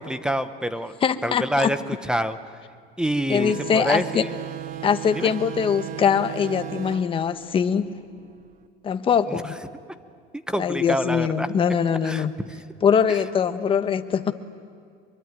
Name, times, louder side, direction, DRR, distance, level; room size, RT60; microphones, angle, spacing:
voice 1, 0.0-0.9 1.2-2.4 3.0-4.3 5.1-5.3 9.3-9.4 10.5-11.5 12.0-12.6 13.1-13.2, equal, 5° right, 11 dB, 0.9 m, -26 dB
voice 2, 1.0-1.7 3.3-4.2 4.8-7.9 8.8-9.5 10.6-12.3 12.8-14.3, left 7 dB, 25° left, 10 dB, 1.1 m, -22 dB
sound 1, 3.4-8.5, right 12 dB, 40° right, 1.2 m, -36 dB
25.0 x 23.0 x 9.5 m, 2.2 s
cardioid pair, 145°, 20 cm